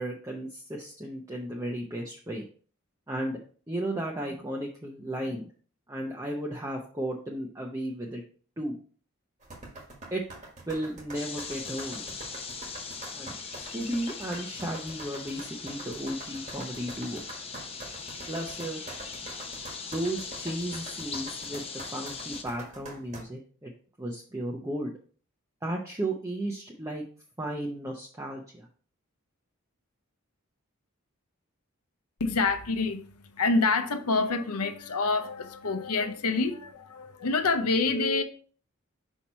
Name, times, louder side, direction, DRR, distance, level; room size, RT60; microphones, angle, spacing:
voice 1, 0.0-2.4 3.1-3.4 3.7-5.5 5.9-8.2 8.6-8.8 10.1-10.2 10.7-12.0 13.1-17.2 18.3-18.8 19.2-19.4 19.8-23.7 24.0-24.9 25.6-27.0 27.4-28.7, right 1 dB, 15° right, 0.6 m, -34 dB
sound 1, 9.4-23.2, right 2 dB, 35° right, 1.4 m, -44 dB
sound 2, 11.1-22.4, left 5 dB, 25° left, 0.7 m, -40 dB
voice 2, 32.2-38.2, left 3 dB, 90° left, 0.8 m, -27 dB
5.5 x 4.5 x 4.3 m
head